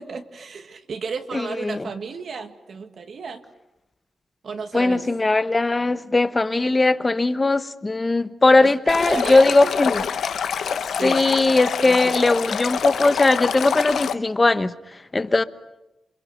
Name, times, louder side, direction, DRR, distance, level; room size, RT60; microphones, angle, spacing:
voice 1, 0.0-3.4 4.4-5.0 8.6-9.9 10.4-12.5, right 5 dB, 50° right, 1.9 m, -34 dB
voice 2, 1.3-1.9 4.7-10.0 11.0-14.7 15.1-15.4, left 2 dB, 20° left, 1.0 m, -19 dB
Stream, 8.9-14.1, left 7 dB, 70° left, 1.1 m, -26 dB
28.0 x 27.0 x 6.5 m
wide cardioid pair, 165°, 0 cm